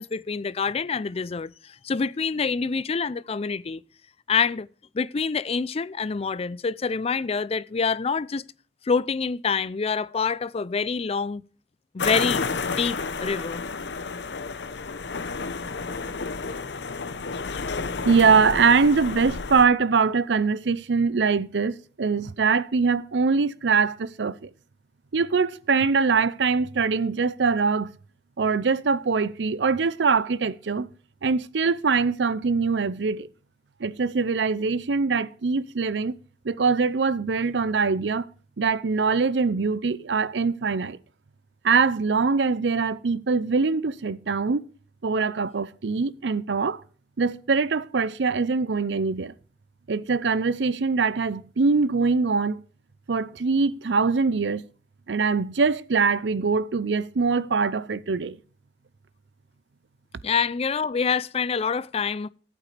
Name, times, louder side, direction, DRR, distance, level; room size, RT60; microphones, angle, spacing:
voice 1, 0.0-3.8 4.3-4.7 4.9-8.4 8.9-11.4 11.9-13.6 60.2-62.3, left 5 dB, 35° left, 0.4 m, -26 dB
sound 1, 12.0-19.7, left 4 dB, 75° left, 0.8 m, -31 dB
voice 2, 18.0-24.5 25.1-27.9 28.4-30.9 31.2-33.3 33.8-36.1 36.4-38.3 38.6-41.0 41.6-44.6 45.0-46.8 47.2-49.3 49.9-52.6 53.1-54.6 55.1-58.4, right 4 dB, 85° right, 0.6 m, -23 dB
14.0 x 8.7 x 3.3 m
head